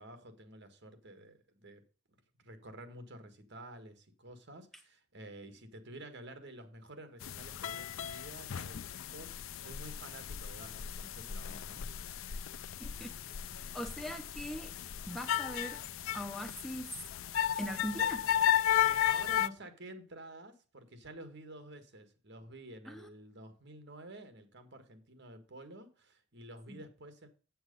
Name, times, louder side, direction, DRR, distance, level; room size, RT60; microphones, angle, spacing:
voice 1, 0.0-1.8 2.1-11.8 18.8-27.3, right 1 dB, 55° right, 1.7 m, -50 dB
sound 1, 7.2-19.5, left 10 dB, 75° left, 0.5 m, -34 dB
voice 2, 12.8-13.1 13.7-14.7 15.1-15.8 16.1-17.0 17.6-18.3 22.9-23.1 26.7-26.8, equal, ahead, 0.6 m, -41 dB
7.8 x 7.7 x 5.3 m
head